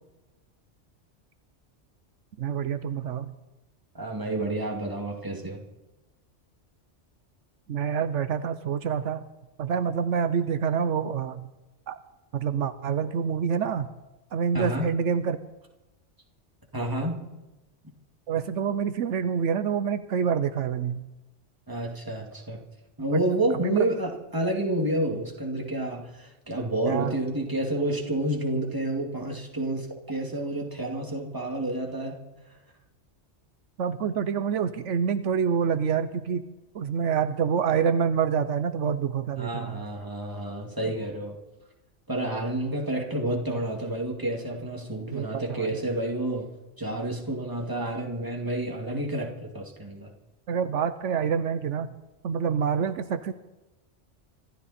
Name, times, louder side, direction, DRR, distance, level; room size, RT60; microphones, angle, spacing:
voice 1, 2.4-3.3 7.7-9.2 9.6-11.5 11.9-12.0 12.3-13.9 14.3-15.4 18.3-21.1 23.1-23.2 23.6-23.8 26.8-27.2 33.8-36.4 36.7-39.8 45.1-45.7 50.5-51.9 52.2-53.3, right 7 dB, 80° right, 12 dB, 1.1 m, -27 dB
voice 2, 3.9-5.6 14.5-14.9 16.7-17.2 17.8-17.9 21.7-22.6 23.0-32.2 39.4-41.4 42.1-46.5 46.8-50.1, right 1 dB, 15° right, 0 dB, 2.5 m, -29 dB
25.5 x 13.0 x 4.3 m, 1.0 s
omnidirectional pair, 1.2 m